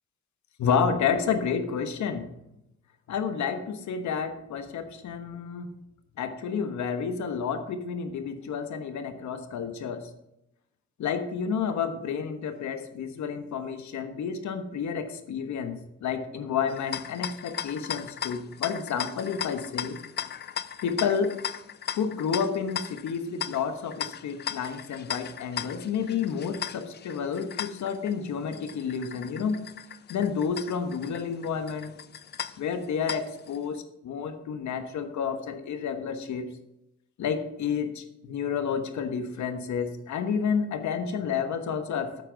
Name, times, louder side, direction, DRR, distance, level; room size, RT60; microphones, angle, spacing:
voice 1, 0.6-2.2 3.1-5.7 6.2-10.1 11.0-20.0 20.8-21.3 22.0-29.7 30.1-32.0 32.6-36.5 37.2-42.2, left 6 dB, 70° left, 8 dB, 1.2 m, -30 dB
sound 1, 16.7-33.6, left 9 dB, 35° left, 0.4 m, -37 dB
9.0 x 8.3 x 3.9 m, 0.84 s
cardioid pair, 90°, 30 cm